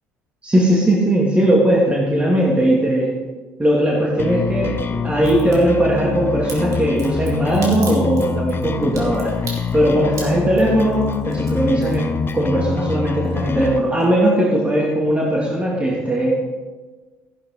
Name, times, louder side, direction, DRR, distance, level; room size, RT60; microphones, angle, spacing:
voice 1, 0.4-3.1 3.6-16.4, right 1 dB, 20° right, -3 dB, 2.6 m, -18 dB
sound 1, 4.2-13.8, left 5 dB, 35° left, 0.8 m, -25 dB
Crack, 5.2-5.6 6.5-12.7 13.0-13.7 14.0-14.1, right 3 dB, 55° right, 3.8 m, -37 dB
14.0 x 11.0 x 4.0 m, 1.3 s
supercardioid pair, 70°, 6 cm